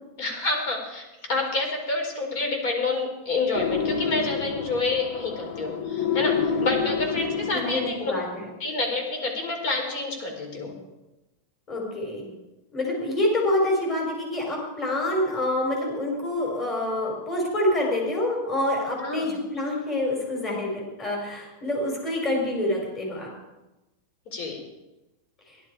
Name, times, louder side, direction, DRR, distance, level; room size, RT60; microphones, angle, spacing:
voice 1, 0.2-8.1 8.6-10.7 19.0-19.3 24.3-24.6, left 3 dB, 55° left, 3 dB, 4.4 m, -28 dB
sound 1, 3.5-8.2, left 6 dB, 75° left, 1.6 m, -28 dB
voice 2, 7.2-8.4 11.7-12.3 12.7-23.3, left 1 dB, 25° left, -1 dB, 5.4 m, -27 dB
18.0 x 11.5 x 4.9 m, 1.0 s
supercardioid pair, 155°, 0 cm